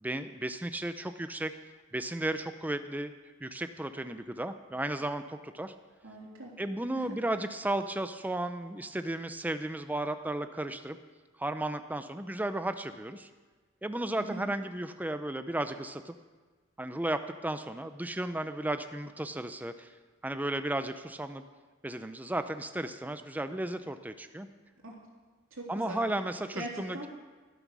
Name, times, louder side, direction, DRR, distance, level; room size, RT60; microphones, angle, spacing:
voice 1, 0.0-1.5 1.9-3.1 3.4-5.7 6.6-11.0 11.4-13.3 13.8-16.1 16.8-19.9 20.2-21.4 21.8-24.5 25.7-27.1, right 1 dB, 10° right, 9 dB, 0.5 m, -34 dB
voice 2, 6.0-6.5 6.9-7.2 14.2-14.5 24.8-25.0 25.5-26.0 26.5-27.1, right 2 dB, 90° right, -2 dB, 3.3 m, -41 dB
12.5 x 12.0 x 6.2 m, 1.3 s
head